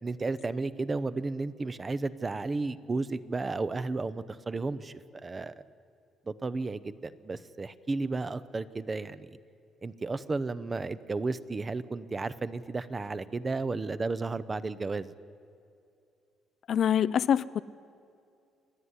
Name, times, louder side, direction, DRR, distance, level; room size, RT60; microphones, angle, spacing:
voice 1, 0.0-5.5 6.3-9.4 9.8-15.1, right 3 dB, 20° right, 15 dB, 0.7 m, -33 dB
voice 2, 16.7-17.6, left 9 dB, 55° left, 17 dB, 0.4 m, -25 dB
28.5 x 10.0 x 9.7 m, 2.4 s
cardioid pair, 125°, 0 cm